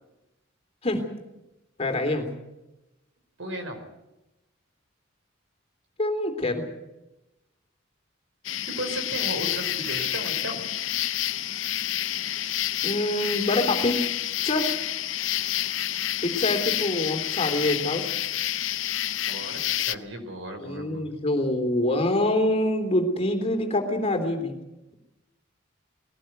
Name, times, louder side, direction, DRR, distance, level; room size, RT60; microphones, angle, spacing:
voice 1, 1.8-2.3 6.0-6.7 12.8-14.0 14.4-14.7 16.2-18.1 20.6-24.5, left 1 dB, 30° left, 4 dB, 3.3 m, -25 dB
voice 2, 3.4-3.8 8.7-10.6 10.9-11.1 19.2-21.1, right 1 dB, 70° right, 5 dB, 4.5 m, -35 dB
sound 1, 8.4-19.9, left 12 dB, 75° left, 0.7 m, -29 dB
21.5 x 18.0 x 8.0 m, 0.98 s
head